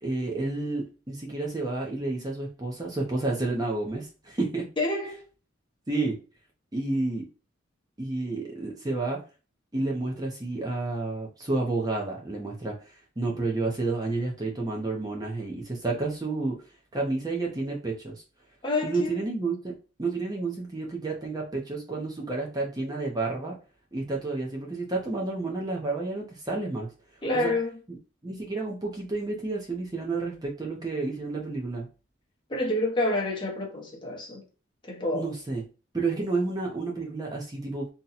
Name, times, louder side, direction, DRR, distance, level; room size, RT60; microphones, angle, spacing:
voice 1, 0.0-4.7 5.9-6.1 6.7-7.3 8.0-9.2 9.7-16.6 16.9-18.2 18.8-19.7 20.0-23.6 23.9-26.9 27.3-27.5 28.2-31.9 35.1-35.6 35.9-37.9, right 3 dB, 20° right, 0.5 m, -30 dB
voice 2, 4.8-5.2 18.6-19.2 27.2-27.8 32.5-34.4 34.8-35.3, left 2 dB, 25° left, 0.7 m, -28 dB
2.7 x 2.2 x 3.9 m
head